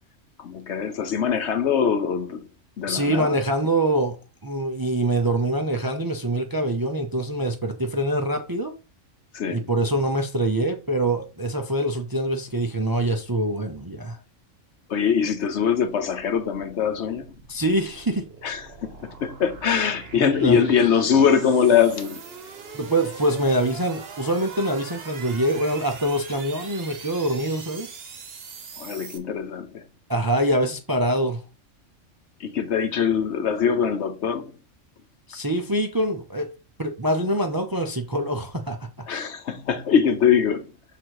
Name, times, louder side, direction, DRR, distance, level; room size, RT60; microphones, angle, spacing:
voice 1, 0.4-2.5 2.8-3.4 9.3-9.7 14.9-17.3 18.4-22.2 28.8-29.8 32.4-34.5 39.1-40.7, left 7 dB, 65° left, 1.0 m, -22 dB
voice 2, 2.9-4.2 4.4-8.7 9.5-14.2 17.5-18.3 20.2-20.7 22.7-28.0 30.1-31.4 35.3-36.5 36.8-38.9, right 1 dB, 25° right, 0.5 m, -24 dB
sound 1, 15.5-29.2, right 5 dB, 55° right, 1.1 m, -42 dB
6.1 x 3.9 x 4.7 m
omnidirectional pair, 1.3 m